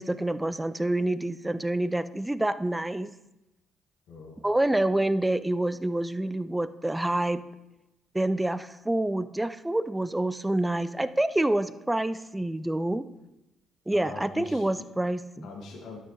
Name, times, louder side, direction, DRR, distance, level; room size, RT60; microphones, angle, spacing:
voice 1, 0.0-3.1 4.4-7.4 8.1-13.1 13.9-15.5, right 1 dB, 10° right, 15 dB, 0.4 m, -27 dB
voice 2, 4.1-4.4 5.7-5.9 13.9-14.8 15.4-16.0, left 4 dB, 60° left, -1 dB, 1.8 m, -42 dB
12.0 x 6.1 x 3.1 m, 0.95 s
figure-of-eight pair, 45°, 0 cm